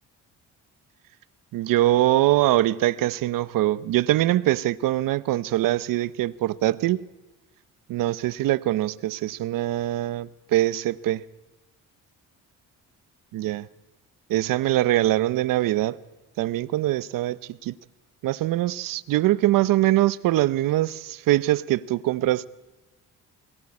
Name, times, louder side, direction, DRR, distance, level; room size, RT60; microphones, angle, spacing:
voice 1, 1.5-7.0 7.9-11.2 13.3-13.7 14.3-16.0 16.4-17.7 18.2-22.5, right 15 dB, 85° right, 0.7 m, -23 dB
22.0 x 18.0 x 9.6 m
cardioid pair, 100°, 32 cm